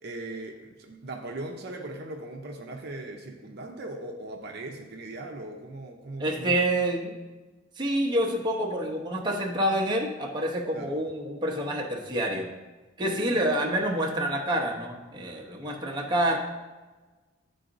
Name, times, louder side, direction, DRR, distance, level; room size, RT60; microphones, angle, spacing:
voice 1, 0.0-6.6 10.7-11.0 13.0-13.4, right 2 dB, 55° right, 2 dB, 0.6 m, -39 dB
voice 2, 6.2-7.2 7.8-12.5 13.0-16.4, right 1 dB, 25° right, -1 dB, 0.7 m, -27 dB
10.5 x 3.9 x 2.6 m, 1.2 s
head